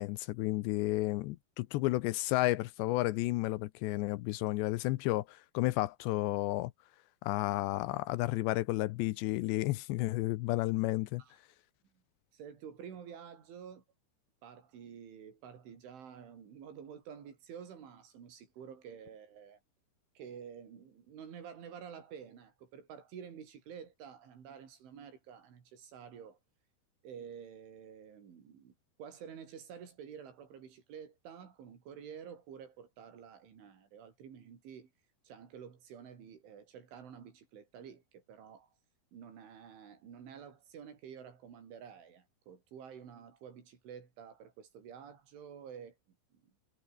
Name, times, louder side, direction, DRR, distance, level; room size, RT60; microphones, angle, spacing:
voice 1, 0.0-6.7 7.2-11.2, left 19 dB, 80° left, 2.8 m, -32 dB
voice 2, 12.3-13.8 14.4-19.6 20.2-26.4 27.0-34.9 35.2-38.8 39.1-46.5, right 7 dB, 90° right, 6.6 m, -50 dB
omnidirectional pair, 5.4 m